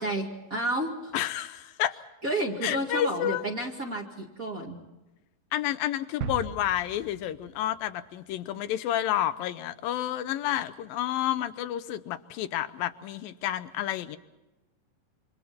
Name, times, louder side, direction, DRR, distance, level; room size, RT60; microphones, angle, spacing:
voice 1, 0.0-1.1 2.2-4.8, right 1 dB, 30° right, 1 dB, 2.1 m, -31 dB
voice 2, 1.1-2.0 2.6-3.5 5.5-14.2, left 12 dB, 80° left, 11 dB, 2.6 m, -30 dB
sound 1, 6.2-8.1 8.5-8.6, right 6 dB, 70° right, 2.7 m, -39 dB
28.0 x 25.5 x 4.3 m, 1.1 s
omnidirectional pair, 4.0 m